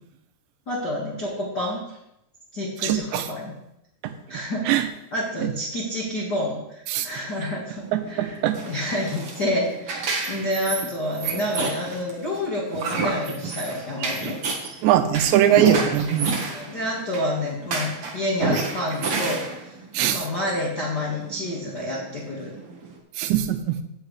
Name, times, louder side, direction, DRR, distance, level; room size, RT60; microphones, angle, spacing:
voice 1, 0.7-2.0 2.5-3.5 4.3-4.7 5.1-8.4 8.7-14.4 16.5-19.8 20.1-22.5, left 1 dB, 55° left, -6 dB, 1.1 m, -29 dB
voice 2, 2.8-3.3 4.0-4.1 4.7-4.9 5.4-5.5 6.9-7.1 7.9-8.6 14.8-16.4 19.9-20.2 23.2-23.8, right 11 dB, 80° right, 8 dB, 3.0 m, -21 dB
sound 1, 7.8-23.0, right 4 dB, 60° right, 1.5 m, -31 dB
16.5 x 7.5 x 3.3 m, 0.83 s
omnidirectional pair, 5.1 m